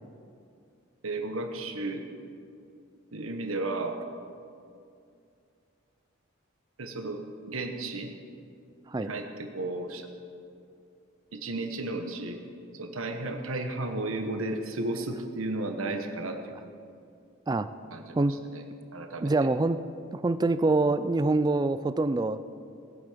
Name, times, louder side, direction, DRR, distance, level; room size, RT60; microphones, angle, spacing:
voice 1, 1.0-2.1 3.1-4.0 6.8-8.1 9.0-10.1 11.3-12.4 12.7-16.5 17.9-18.3 18.5-18.6 18.9-19.5, right 2 dB, 80° right, 5 dB, 1.3 m, -33 dB
voice 2, 19.2-19.8 20.1-22.4, right 2 dB, 20° right, 12 dB, 0.3 m, -25 dB
19.0 x 8.3 x 5.1 m, 2.5 s
head